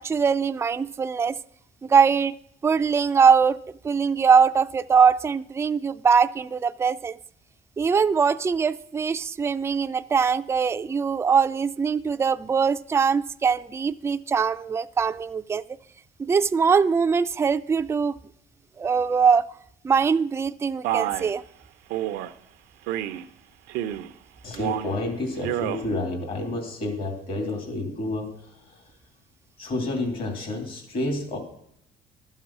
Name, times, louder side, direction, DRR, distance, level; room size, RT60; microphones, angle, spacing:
voice 1, 0.0-1.4 1.8-2.3 2.6-3.6 3.8-7.2 7.8-15.6 16.2-18.2 18.8-19.4 19.8-21.4, right 6 dB, 15° right, 10 dB, 0.3 m, -22 dB
Male speech man speaking, 20.8-21.3 21.9-22.3 22.9-23.3 23.7-24.1 24.5-25.0 25.4-25.8, right 12 dB, 90° right, 0.6 m, -29 dB
voice 2, 24.4-29.0 29.6-31.4, left 2 dB, 60° left, 2 dB, 2.8 m, -30 dB
12.0 x 7.4 x 6.0 m, 0.72 s
cardioid pair, 110°, 17 cm